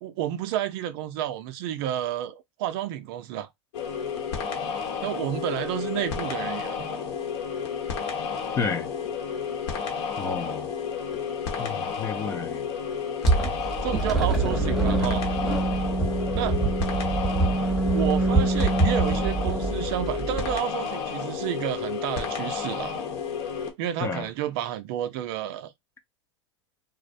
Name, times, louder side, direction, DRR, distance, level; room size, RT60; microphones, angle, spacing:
voice 1, 0.0-3.5 5.0-6.9 13.8-15.2 16.4-16.6 17.9-23.0 23.8-25.7, right 11 dB, 50° right, 0.4 m, -30 dB
sound 1, 3.7-23.7, left 6 dB, 60° left, 0.9 m, -31 dB
voice 2, 8.5-8.9 10.2-10.7 11.6-12.7 24.0-24.3, left 5 dB, 20° left, 0.3 m, -30 dB
sound 2, 13.3-20.6, right 3 dB, ahead, 0.8 m, -25 dB
2.4 x 2.0 x 2.5 m
hypercardioid pair, 110°, 16 cm